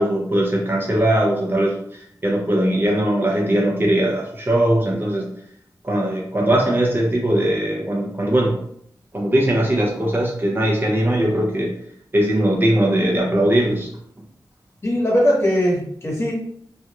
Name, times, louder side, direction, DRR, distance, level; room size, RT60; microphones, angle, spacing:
voice 1, 0.0-1.7 2.2-5.3 5.8-8.6 9.1-11.7 12.1-13.9, right 1 dB, 30° right, -2 dB, 0.6 m, -20 dB
voice 2, 14.8-16.3, equal, 40° left, -4 dB, 1.0 m, -19 dB
2.3 x 2.1 x 2.9 m, 0.67 s
wide cardioid pair, 90°, 7 cm